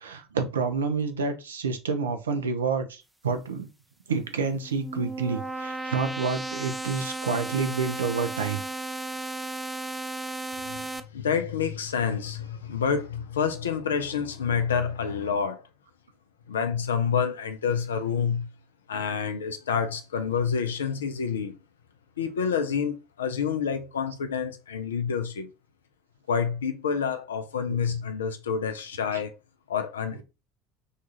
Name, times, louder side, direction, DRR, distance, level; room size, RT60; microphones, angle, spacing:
voice 1, 0.0-3.0 3.2-3.7 4.1-8.6 29.1-29.2 30.1-30.2, right 5 dB, 75° right, 0.4 m, -28 dB
sound 1, 4.5-11.0, right 2 dB, 5° right, 0.4 m, -34 dB
voice 2, 10.6-15.6 16.5-18.5 18.9-21.6 22.2-25.5 26.3-29.3 29.7-30.2, left 6 dB, 70° left, 0.4 m, -28 dB
2.7 x 2.3 x 2.7 m
figure-of-eight pair, 65°, 0 cm